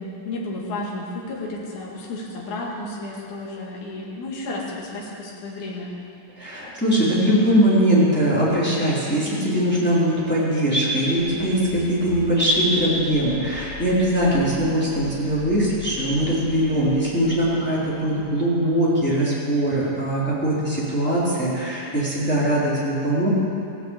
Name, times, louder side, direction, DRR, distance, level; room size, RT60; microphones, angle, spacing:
voice 1, 0.0-5.9, left 2 dB, 60° left, -4 dB, 3.4 m, -32 dB
voice 2, 6.4-23.3, equal, 5° left, -9 dB, 3.5 m, -21 dB
sound 1, 11.2-18.6, left 2 dB, 45° left, 3.8 m, -41 dB
16.0 x 8.5 x 8.3 m, 2.7 s
omnidirectional pair, 3.9 m